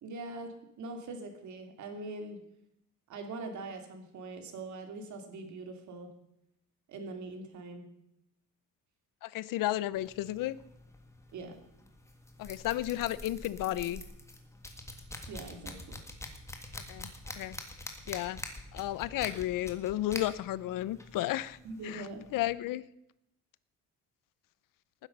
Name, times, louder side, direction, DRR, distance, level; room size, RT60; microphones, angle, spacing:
voice 1, 0.0-2.4 3.1-6.1 6.9-7.9 11.3-11.6 15.3-16.0 21.6-22.2, right 2 dB, 60° right, 5 dB, 2.8 m, -42 dB
voice 2, 9.2-10.6 12.4-14.0 16.9-17.6 18.1-18.4 18.7-21.6 21.8-22.1 22.3-22.8, left 14 dB, 80° left, 18 dB, 0.7 m, -33 dB
sound 1, 9.9-22.5, left 1 dB, 10° left, 1.8 m, -46 dB
19.0 x 10.0 x 5.4 m, 0.80 s
cardioid pair, 160°, 32 cm